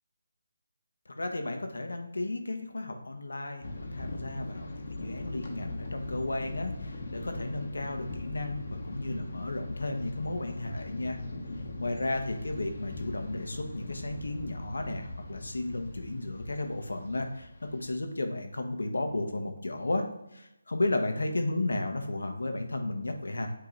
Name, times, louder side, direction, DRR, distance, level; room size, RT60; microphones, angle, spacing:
voice 1, 1.1-11.2 11.8-20.1 20.3-23.5, left 2 dB, 90° left, 5 dB, 1.1 m, -34 dB
sound 1, 3.6-18.0, left 2 dB, 45° left, 1.0 m, -40 dB
8.2 x 3.0 x 3.8 m, 0.89 s
figure-of-eight pair, 170°, 0 cm